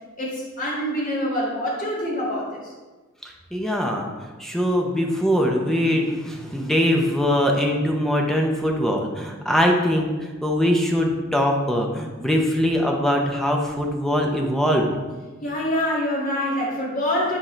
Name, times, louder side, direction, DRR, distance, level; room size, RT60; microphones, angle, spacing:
voice 1, 0.2-2.6 15.4-17.4, left 1 dB, 40° left, -5 dB, 2.1 m, -25 dB
voice 2, 3.5-4.1 4.4-10.1 10.4-14.9, equal, ahead, 1 dB, 0.8 m, -22 dB
10.0 x 4.4 x 3.3 m, 1.3 s
head